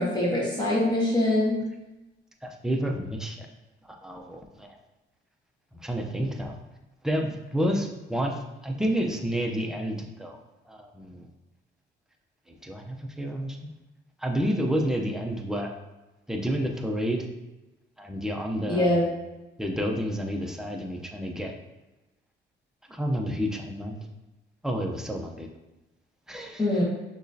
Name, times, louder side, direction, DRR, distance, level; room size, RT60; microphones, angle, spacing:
voice 1, 0.0-1.6 18.7-19.1 26.6-26.8, left 1 dB, 20° left, -6 dB, 1.5 m, -23 dB
voice 2, 2.4-3.5 4.0-4.8 5.8-6.6 7.0-10.4 10.7-11.3 12.6-13.7 14.2-15.7 16.3-17.3 18.0-19.1 19.6-21.5 22.9-24.1 24.6-25.5 26.3-26.6, equal, 5° right, 2 dB, 0.6 m, -30 dB
6.2 x 3.1 x 2.7 m, 1.0 s
cardioid pair, 90°, 20 cm